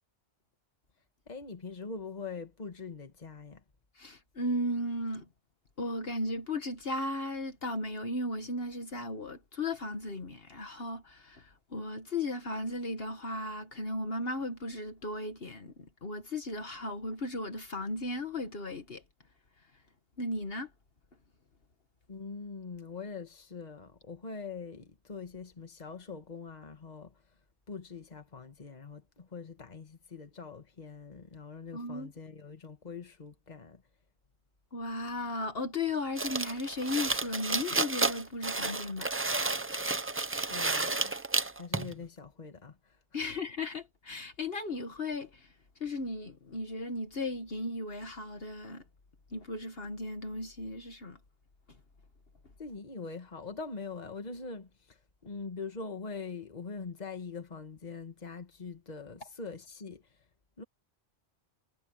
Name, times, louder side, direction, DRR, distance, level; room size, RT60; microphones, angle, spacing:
voice 1, 1.3-3.6 22.1-27.2 27.7-33.8 40.5-41.2 41.5-43.4 52.6-55.0 55.3-60.0 60.6-60.7, left 4 dB, 40° left, 1.7 m, -43 dB
voice 2, 3.9-5.3 5.8-19.0 20.2-20.7 31.7-32.1 34.7-39.2 43.1-45.5 45.8-48.8 49.3-51.2, left 2 dB, 60° left, 1.7 m, -36 dB
sound 1, 36.2-41.9, right 3 dB, 20° right, 0.4 m, -31 dB
omnidirectional pair, 1.1 m